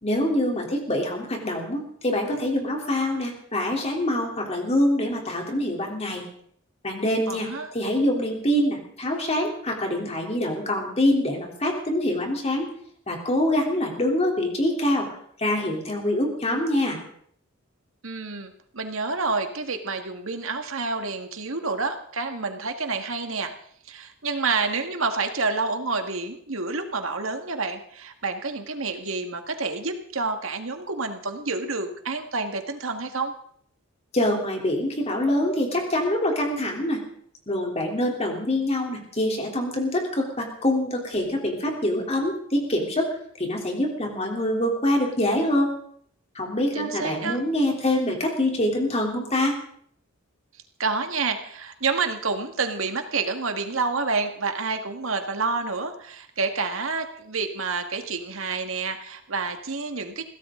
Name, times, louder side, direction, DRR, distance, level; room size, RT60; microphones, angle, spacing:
voice 1, 0.0-6.2 6.8-12.7 13.1-15.1 15.4-17.0 34.1-37.0 37.5-45.7 46.4-49.6, left 1 dB, 30° left, 1 dB, 3.5 m, -25 dB
voice 2, 7.3-7.7 18.0-23.5 23.9-33.3 46.7-47.4 50.8-60.2, right 4 dB, 75° right, 6 dB, 1.9 m, -28 dB
22.0 x 16.5 x 3.9 m, 0.64 s
head